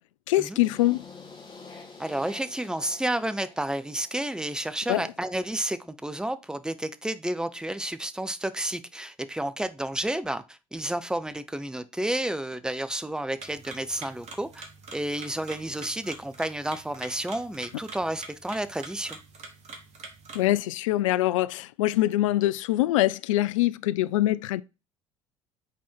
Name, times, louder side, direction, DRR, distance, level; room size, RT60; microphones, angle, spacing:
voice 1, 0.3-1.1 4.9-5.0 20.3-24.6, left 15 dB, 65° left, 0.4 m, -24 dB
sound 1, 0.6-4.7, left 4 dB, 25° left, 2.2 m, -48 dB
voice 2, 2.0-19.2, right 1 dB, 5° right, 0.6 m, -31 dB
sound 2, 13.4-20.5, right 4 dB, 40° right, 1.6 m, -45 dB
5.8 x 4.2 x 4.5 m
figure-of-eight pair, 60°, 17 cm